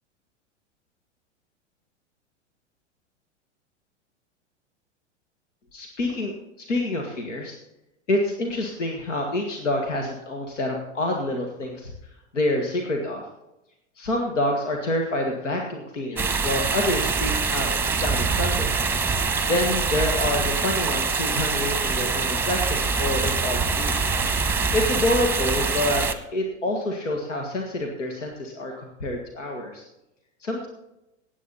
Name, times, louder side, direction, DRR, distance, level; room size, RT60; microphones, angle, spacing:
voice 1, 5.7-7.6 8.1-11.9 12.3-13.3 14.0-18.7 19.5-23.9 24.7-26.1 26.3-29.8 30.4-30.7, left 1 dB, 80° left, 2 dB, 1.9 m, -27 dB
sound 1, 16.2-26.1, right 4 dB, 5° right, 0.9 m, -24 dB
17.5 x 8.5 x 4.1 m, 0.92 s
hypercardioid pair, 95°, 36 cm